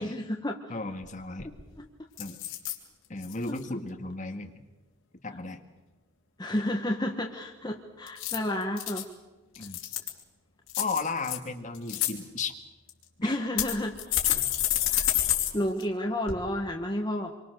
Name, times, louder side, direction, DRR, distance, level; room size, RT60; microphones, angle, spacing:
voice 1, 0.0-0.6 1.4-1.9 6.4-9.0 13.2-14.0 14.3-14.4 14.9-15.0 15.5-17.3, left 1 dB, 20° left, 1 dB, 1.4 m, -31 dB
voice 2, 0.7-1.5 2.2-2.4 3.1-4.6 5.2-5.6 6.5-6.6 9.6-9.8 10.8-12.5 13.2-13.3 14.3-14.4, left 3 dB, 40° left, 5 dB, 1.9 m, -35 dB
sound 1, 1.0-1.1 1.4-1.7 2.2-2.8 3.2-3.6 8.1-9.0 9.5-10.2 10.7-11.4 11.7-12.1 12.9-13.0 13.6-15.5 15.8-15.9 16.3-16.4, left 12 dB, 75° left, 3.3 m, -28 dB
26.5 x 24.0 x 6.7 m, 1.1 s
head